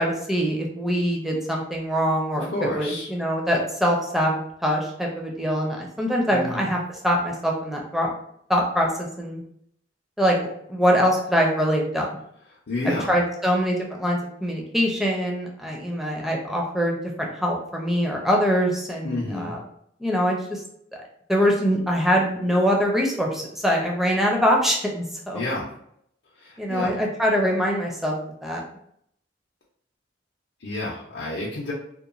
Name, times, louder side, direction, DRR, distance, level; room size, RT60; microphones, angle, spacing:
voice 1, 0.0-4.3 4.6-6.8 7.0-8.1 8.5-9.4 10.2-10.4 10.7-12.1 12.8-19.6 20.0-20.6 21.3-25.4 26.6-28.1 28.4-28.6, equal, ahead, -1 dB, 0.5 m, -23 dB
voice 2, 2.4-3.1 6.3-6.7 12.5-13.2 19.0-19.5 25.3-25.7 26.4-27.0 30.6-31.7, left 2 dB, 65° left, -6 dB, 0.6 m, -30 dB
2.9 x 2.1 x 2.4 m, 0.70 s
head